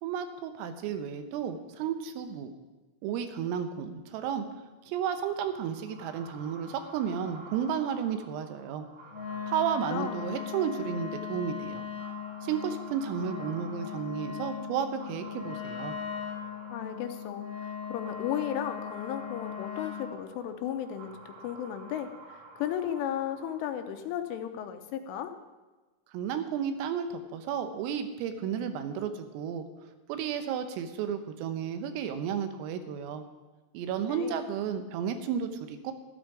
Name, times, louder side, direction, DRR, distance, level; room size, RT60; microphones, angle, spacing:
voice 1, 0.0-2.5 3.0-4.5 4.9-8.9 9.5-11.9 12.4-16.0 26.1-33.2 33.8-35.9, right 8 dB, 85° right, 8 dB, 3.7 m, -33 dB
sound 1, 5.1-24.0, right 3 dB, 70° right, 4.3 m, -51 dB
Wind instrument woodwind instrument, 9.1-20.1, left 7 dB, 50° left, 1.7 m, -38 dB
voice 2, 9.7-10.1 16.7-25.3 34.1-34.4, left 10 dB, 80° left, 7 dB, 3.2 m, -35 dB
13.5 x 13.0 x 4.9 m, 1.2 s
omnidirectional pair, 5.9 m